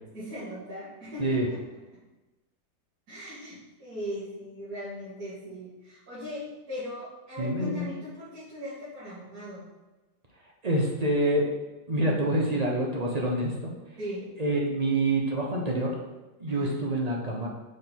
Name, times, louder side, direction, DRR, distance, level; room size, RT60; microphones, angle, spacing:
voice 1, 0.1-1.6 3.1-9.6 14.0-14.2 16.5-16.7, left 1 dB, 65° right, -14 dB, 2.7 m, -39 dB
voice 2, 7.4-7.9 10.6-11.4 11.9-13.7 14.4-15.9 16.4-17.5, right 1 dB, 35° right, -1 dB, 0.6 m, -26 dB
6.2 x 3.9 x 4.5 m, 1.1 s
omnidirectional pair, 1.8 m